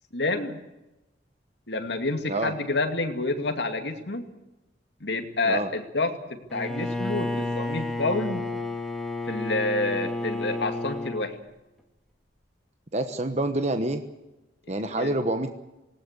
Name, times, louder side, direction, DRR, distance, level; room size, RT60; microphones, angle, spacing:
voice 1, 0.1-0.6 1.7-4.2 5.0-8.4 9.3-11.3 14.8-15.1, left 2 dB, 65° left, 5 dB, 2.4 m, -28 dB
Bowed string instrument, 6.5-11.3, left 2 dB, ahead, 2.2 m, -31 dB
voice 2, 12.9-14.0 14.7-15.5, right 2 dB, 40° right, 7 dB, 1.2 m, -27 dB
19.0 x 18.5 x 8.3 m, 0.97 s
head